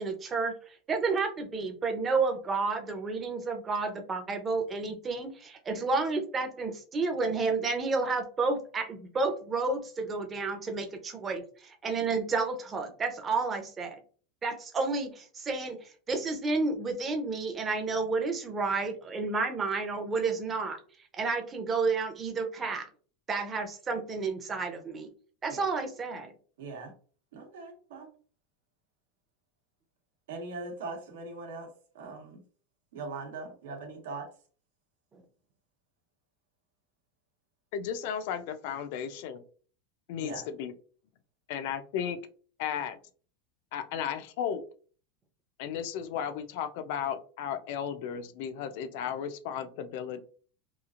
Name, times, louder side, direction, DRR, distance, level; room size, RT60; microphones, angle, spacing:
voice 1, 0.0-14.0 14.4-20.8 21.1-22.9 23.3-25.1 25.4-26.3, right 4 dB, 20° right, 5 dB, 0.5 m, -31 dB
voice 2, 26.6-26.9 27.3-28.1 30.3-31.7 31.9-32.4 32.9-34.3 40.2-40.5, right 3 dB, 85° right, 3 dB, 0.9 m, -40 dB
voice 3, 37.7-39.4 40.1-40.7 41.5-42.2 42.6-43.0 43.7-44.6 45.6-50.2, left 8 dB, 60° left, 10 dB, 0.4 m, -34 dB
3.0 x 2.4 x 2.4 m, 0.41 s
supercardioid pair, 155°, 0 cm